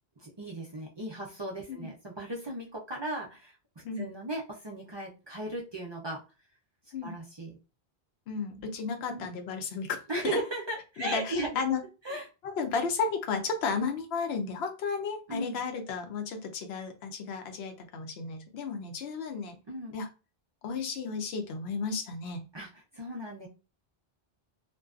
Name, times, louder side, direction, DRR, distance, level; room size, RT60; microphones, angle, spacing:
voice 1, 0.2-3.5 4.0-6.2 7.0-7.6 8.5-8.6 9.1-9.3 10.1-11.6 12.0-12.2 15.3-15.6 19.7-20.0 22.5-23.5, right 1 dB, 40° right, -2 dB, 0.4 m, -36 dB
voice 2, 8.3-10.0 11.0-11.8 12.4-19.6 19.9-20.1 20.6-22.5, left 5 dB, 80° left, 5 dB, 0.8 m, -33 dB
2.5 x 2.2 x 2.3 m, 0.31 s
omnidirectional pair, 1.0 m